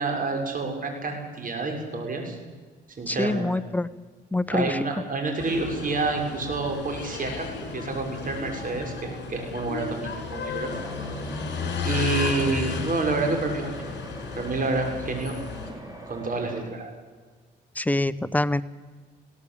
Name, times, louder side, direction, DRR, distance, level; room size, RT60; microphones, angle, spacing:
voice 1, 0.0-2.4 3.0-3.5 4.5-7.5 7.7-10.7 11.0-11.1 11.8-13.7 14.4-15.3 16.1-16.9, right 3 dB, 45° right, 3 dB, 6.4 m, -28 dB
voice 2, 3.1-3.9 4.3-4.8 17.8-18.6, left 2 dB, 10° left, 13 dB, 0.9 m, -25 dB
sound 1, 5.4-15.7, left 6 dB, 60° left, 5.8 m, -33 dB
sound 2, 10.7-16.6, right 1 dB, 15° right, 5.4 m, -42 dB
21.0 x 17.0 x 8.7 m, 1.4 s
cardioid pair, 90°, 20 cm